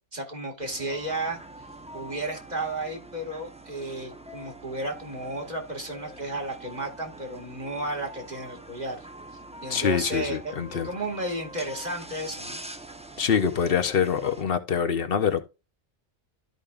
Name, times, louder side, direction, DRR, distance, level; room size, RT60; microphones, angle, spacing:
voice 1, 0.1-1.4 1.9-9.1 9.6-10.5 10.8-12.6, right 1 dB, 40° right, 2.0 m, -33 dB
sound 1, 0.6-14.4, right 1 dB, 5° right, 0.7 m, -44 dB
voice 2, 9.7-10.9 13.2-15.4, left 7 dB, 65° left, 0.9 m, -25 dB
13.0 x 5.1 x 2.4 m
omnidirectional pair, 1.1 m